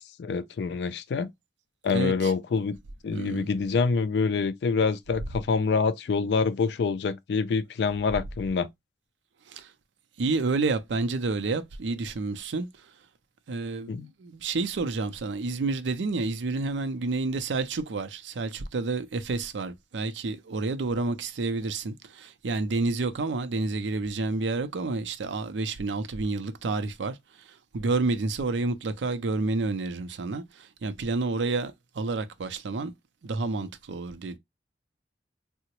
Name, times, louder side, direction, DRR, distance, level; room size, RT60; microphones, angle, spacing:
voice 1, 0.0-1.3 1.8-2.8 3.0-8.7 13.9-14.1, left 5 dB, 65° left, 0.3 m, -26 dB
voice 2, 1.9-2.3 3.1-3.5 9.5-9.7 10.2-12.7 13.5-27.2 27.7-32.9 33.2-34.4, right 3 dB, 90° right, 0.5 m, -29 dB
3.7 x 2.1 x 2.9 m
head